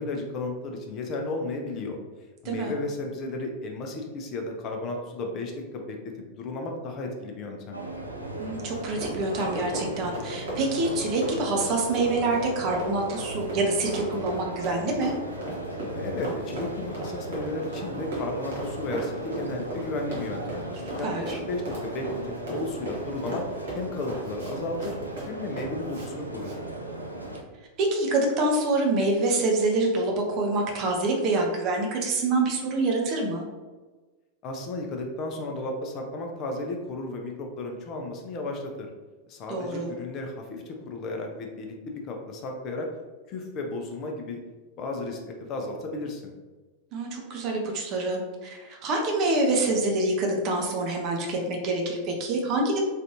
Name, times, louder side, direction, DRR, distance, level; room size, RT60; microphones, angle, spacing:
voice 1, 0.0-2.0 2.4-7.8 15.9-20.6 21.0-23.4 23.7-25.0 25.3-26.5 34.4-38.9 39.3-42.9 43.3-44.4 44.8-46.3, left 2 dB, 35° left, 2 dB, 0.6 m, -34 dB
sound 1, 7.7-27.4, right 1 dB, 90° right, 0.4 m, -36 dB
voice 2, 8.4-15.1 20.8-21.4 27.8-33.4 39.5-39.9 46.9-52.8, right 2 dB, 40° right, 0 dB, 0.6 m, -26 dB
Run, 8.7-26.1 26.4-26.6, right 1 dB, 60° right, 1.0 m, -38 dB
3.2 x 2.6 x 2.8 m, 1.3 s
figure-of-eight pair, 90°, 0 cm